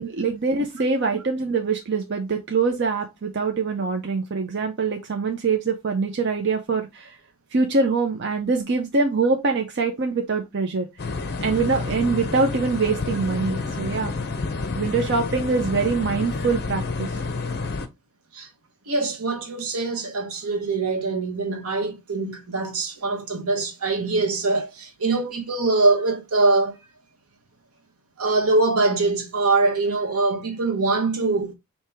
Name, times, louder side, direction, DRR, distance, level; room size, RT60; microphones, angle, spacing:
voice 1, 0.0-7.1 7.5-10.9 11.4-14.1 14.7-17.1, right 4 dB, 50° right, 0.6 m, -24 dB
sound 1, 11.0-17.9, left 3 dB, 45° left, 0.6 m, -29 dB
voice 2, 18.9-26.7 28.2-31.5, right 3 dB, 75° right, 1.0 m, -23 dB
4.4 x 2.8 x 3.4 m
head